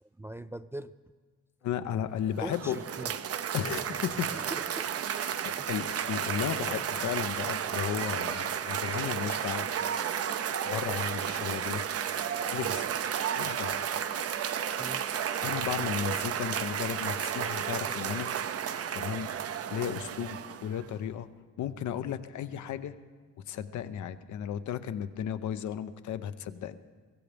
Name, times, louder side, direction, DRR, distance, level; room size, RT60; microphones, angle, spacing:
voice 1, 0.0-0.9 2.4-3.2 4.3-4.9 5.6-5.7 8.9-9.0 14.8-15.1, right 1 dB, 10° right, 12 dB, 0.3 m, -41 dB
voice 2, 1.6-2.8 3.5-4.5 5.4-9.7 10.6-11.8 12.5-12.9 13.3-13.9 15.4-18.3 18.9-19.3 19.7-21.3 21.6-22.9 23.5-26.8, left 9 dB, 70° left, 10 dB, 0.8 m, -34 dB
Cheering / Applause, 2.2-20.8, right 8 dB, 50° right, 0.7 m, -32 dB
24.0 x 15.0 x 3.5 m, 1.5 s
cardioid pair, 90°, 30 cm